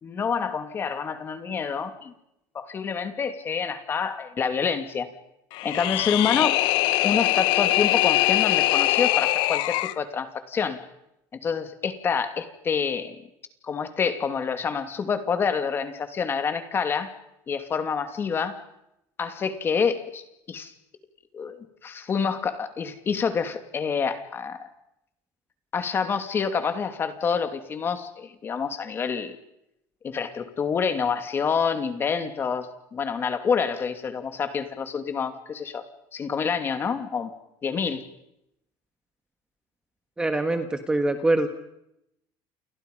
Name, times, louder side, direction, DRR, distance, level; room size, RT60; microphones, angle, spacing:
voice 1, 0.0-2.1 2.5-5.1 5.6-6.6 7.0-10.8 11.3-13.2 13.6-17.1 17.5-18.6 19.2-20.7 21.3-24.7 25.7-29.4 30.0-35.9 36.1-37.3 37.6-38.1, left 6 dB, 25° left, 8 dB, 2.7 m, -27 dB
sound 1, 5.5-10.0, left 17 dB, 60° left, 1.0 m, -22 dB
voice 2, 40.2-41.5, right 2 dB, 10° right, 7 dB, 1.5 m, -24 dB
29.5 x 29.5 x 5.5 m, 0.81 s
cardioid pair, 165°, 9 cm